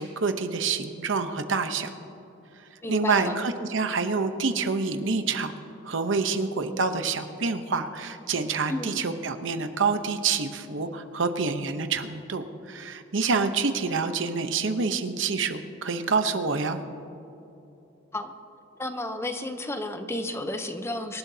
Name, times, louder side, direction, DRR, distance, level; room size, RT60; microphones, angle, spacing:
voice 1, 0.0-1.9 2.9-5.5 5.8-16.8, right 4 dB, 70° right, 8 dB, 0.9 m, -27 dB
voice 2, 2.8-3.4 8.7-9.0 18.1-18.3 18.8-21.2, left 1 dB, 15° left, 7 dB, 0.7 m, -32 dB
24.5 x 12.0 x 2.8 m, 2.9 s
head